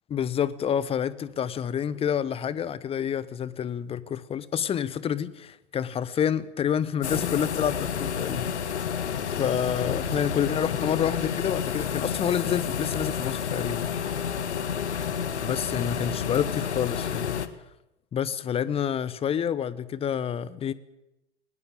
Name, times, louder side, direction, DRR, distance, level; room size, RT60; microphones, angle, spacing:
voice 1, 0.1-8.5 9.2-14.2 15.4-17.3 18.1-20.7, left 8 dB, 15° left, 1.0 m, -28 dB
sound 1, 7.0-17.5, left 7 dB, 65° left, 1.8 m, -30 dB
20.0 x 19.5 x 8.8 m
figure-of-eight pair, 100°, 36 cm